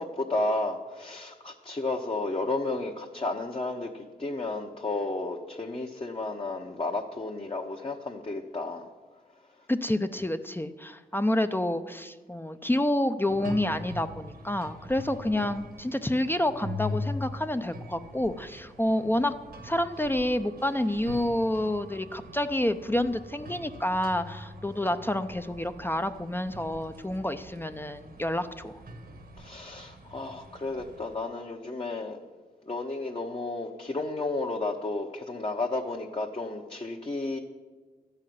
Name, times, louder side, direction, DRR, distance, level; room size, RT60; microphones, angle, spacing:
voice 1, 0.0-8.9 29.4-32.2 32.6-37.4, left 2 dB, 35° left, 0 dB, 1.0 m, -32 dB
voice 2, 9.7-19.3 19.6-28.8, left 1 dB, 15° left, 9 dB, 0.6 m, -28 dB
sound 1, 13.3-31.2, left 1 dB, 70° right, 1.4 m, -42 dB
12.5 x 5.7 x 9.3 m, 1.3 s
cardioid pair, 70°, 16 cm